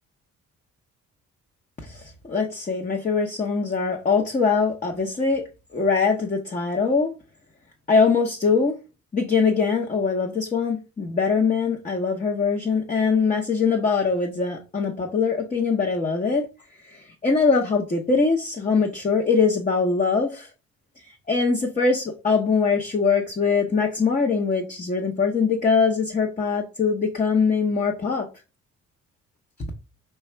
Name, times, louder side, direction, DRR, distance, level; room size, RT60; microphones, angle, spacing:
voice 1, 1.8-5.4 5.7-7.1 7.9-8.8 9.1-16.5 16.9-20.5 21.3-28.3, left 5 dB, 25° left, 0.8 m, -22 dB
4.8 x 2.3 x 4.3 m
cardioid pair, 90°, 30 cm